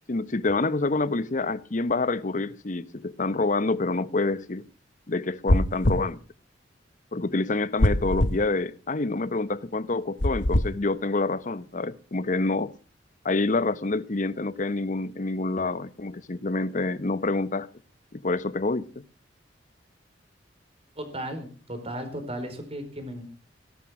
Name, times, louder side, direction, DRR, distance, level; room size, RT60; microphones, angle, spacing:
voice 1, 0.1-4.6 5.1-6.2 7.1-12.7 13.2-17.7 18.1-18.9, left 3 dB, 45° left, 0.9 m, -27 dB
sound 1, 5.5-6.1 7.8-8.4 10.2-10.7, left 1 dB, 80° left, 1.5 m, -22 dB
voice 2, 21.0-23.3, right 1 dB, 35° right, 4.5 m, -35 dB
17.5 x 12.5 x 5.9 m
head